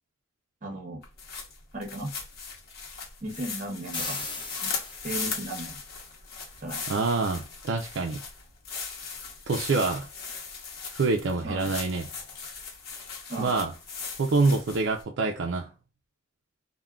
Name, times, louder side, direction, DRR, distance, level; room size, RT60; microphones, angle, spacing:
voice 1, 0.6-1.0 1.7-2.1 3.2-4.2 4.6-4.7 5.0-5.8 6.6-6.8 11.4-11.7 13.3-13.6, right 1 dB, 40° right, 0.8 m, -36 dB
sound 1, 1.0-15.0, left 5 dB, 50° left, 0.9 m, -38 dB
sound 2, 3.9-5.5, left 3 dB, 25° left, 0.6 m, -36 dB
voice 2, 6.9-8.2 9.5-10.1 10.9-12.1 13.4-13.7 14.2-15.7, right 3 dB, 60° right, 0.4 m, -26 dB
3.5 x 2.1 x 2.2 m
head